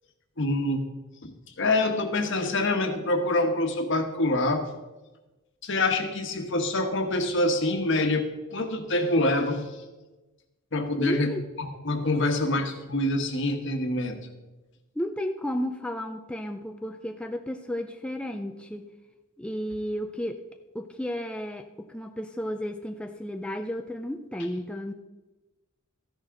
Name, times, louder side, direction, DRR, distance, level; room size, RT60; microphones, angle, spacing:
voice 1, 0.4-0.8 1.2-1.3 1.6-4.6 5.6-9.6 10.7-11.3 11.6-14.2, left 2 dB, 60° left, 6 dB, 1.3 m, -26 dB
voice 2, 10.9-11.4 15.0-18.9 19.4-20.4 20.7-24.9, equal, 5° left, 5 dB, 0.4 m, -33 dB
13.5 x 10.5 x 3.8 m, 1.1 s
head